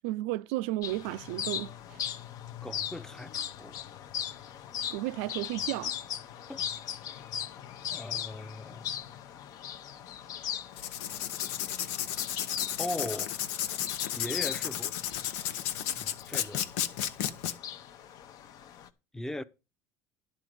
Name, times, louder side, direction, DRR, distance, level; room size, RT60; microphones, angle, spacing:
voice 1, 0.0-2.0 4.9-6.0, right 17 dB, 85° right, 0.4 m, -33 dB
sound 1, 0.8-18.9, left 9 dB, 55° left, 0.8 m, -39 dB
voice 2, 2.6-3.7 6.5-6.7 7.9-8.9 12.8-13.4 14.1-14.9 16.0-16.7 19.1-19.4, left 1 dB, 5° left, 0.6 m, -39 dB
Writing, 10.7-17.5, left 11 dB, 85° left, 0.8 m, -33 dB
11.0 x 4.0 x 7.6 m
supercardioid pair, 110°, 7 cm